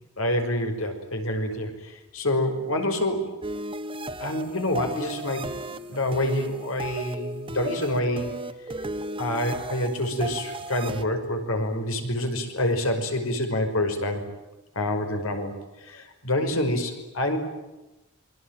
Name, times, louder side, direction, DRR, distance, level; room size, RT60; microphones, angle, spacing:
voice 1, 0.2-3.4 4.2-8.3 9.2-14.3 14.8-17.4, left 1 dB, 80° left, 5 dB, 5.7 m, -27 dB
sound 1, 3.4-11.0, right 1 dB, 25° right, 1.6 m, -35 dB
27.5 x 23.5 x 9.1 m, 1.0 s
head